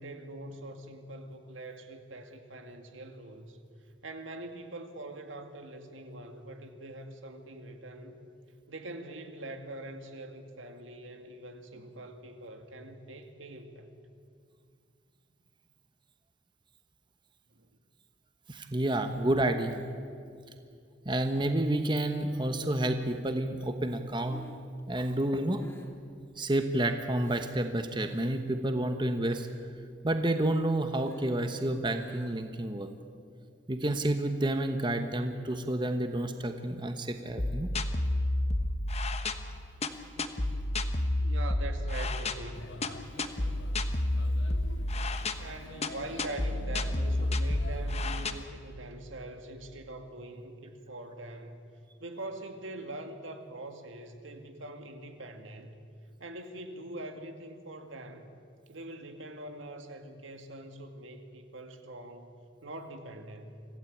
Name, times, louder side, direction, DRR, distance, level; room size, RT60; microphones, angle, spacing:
voice 1, 0.0-3.6 4.0-8.2 8.7-13.9 17.5-17.8 41.2-42.7 45.4-51.6 52.0-55.8 56.2-58.3 58.7-62.4 62.6-63.7, right 1 dB, 80° right, 6 dB, 2.1 m, -43 dB
voice 2, 18.5-19.8 21.0-24.4 24.9-25.6 26.4-29.5 30.0-32.9 33.7-37.7, right 1 dB, 25° right, 7 dB, 1.1 m, -29 dB
Breathing, 24.2-27.6 27.9-28.4 28.7-29.7 30.0-32.6, equal, 10° left, 2.6 m, -52 dB
sound 1, 37.4-48.3, left 1 dB, 35° left, 1.1 m, -31 dB
Male speech man speaking / Child speech kid speaking / Chatter, 42.5-48.5, left 3 dB, 70° left, 1.0 m, -48 dB
25.5 x 16.0 x 8.6 m, 2.3 s
head